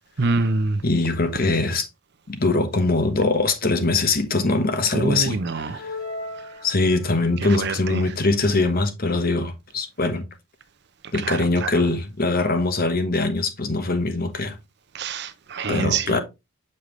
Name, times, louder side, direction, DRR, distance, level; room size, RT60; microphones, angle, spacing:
voice 1, 0.2-0.8 4.9-5.8 7.4-8.0 11.2-11.7 14.9-16.2, right 3 dB, 50° right, 0.7 m, -25 dB
voice 2, 0.8-1.9 2.3-5.4 5.7-5.9 6.6-10.2 11.1-14.6 15.7-16.2, left 3 dB, 40° left, 1.0 m, -22 dB
sound 1, 5.8-7.4, left 2 dB, 90° left, 3.4 m, -36 dB
6.7 x 5.4 x 3.1 m
head